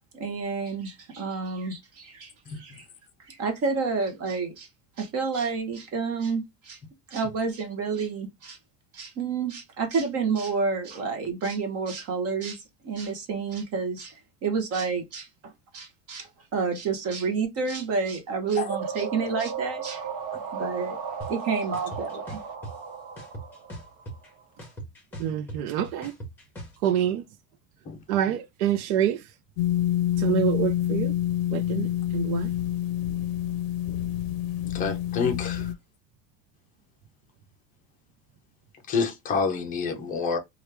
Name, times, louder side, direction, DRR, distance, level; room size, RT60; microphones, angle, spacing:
voice 1, 0.1-2.8 3.3-4.7 5.0-6.8 7.1-8.6 8.9-20.3 20.5-22.4, right 5 dB, 35° right, 0.9 m, -30 dB
sound 1, 18.7-24.4, right 6 dB, 60° right, 1.1 m, -35 dB
sound 2, 21.2-21.3 21.7-22.7 23.2-24.3 24.6-26.8, right 1 dB, 5° left, 1.0 m, -39 dB
voice 2, 25.2-26.2 26.8-27.2 28.1-29.2 30.2-31.1 31.5-32.5 35.6-35.7, right 10 dB, 75° right, 0.7 m, -26 dB
sound 3, 29.6-35.7, left 12 dB, 75° left, 0.6 m, -27 dB
voice 3, 34.7-35.6 38.9-40.4, left 5 dB, 20° left, 0.5 m, -27 dB
3.0 x 2.4 x 3.2 m
cardioid pair, 175°, 42 cm